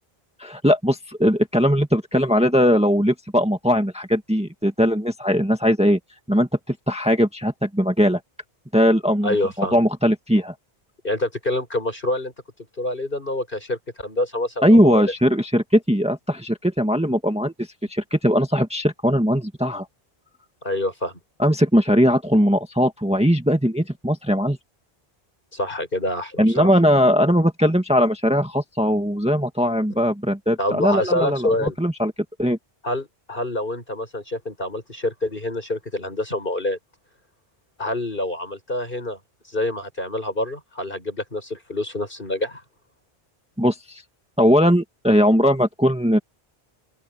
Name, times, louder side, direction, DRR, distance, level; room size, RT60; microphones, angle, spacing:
voice 1, 0.4-6.0 6.3-8.2 8.7-10.5 14.6-19.9 21.4-24.6 26.4-32.1 32.4-32.6 43.6-44.0 44.4-46.2, equal, 5° right, 1.8 m, -19 dB
voice 2, 9.2-9.8 11.0-12.3 12.8-15.1 20.6-21.2 25.5-26.7 30.6-31.8 32.8-36.8 37.8-39.2 39.5-42.6, left 1 dB, 55° left, 7.5 m, -26 dB
open air
omnidirectional pair, 1.0 m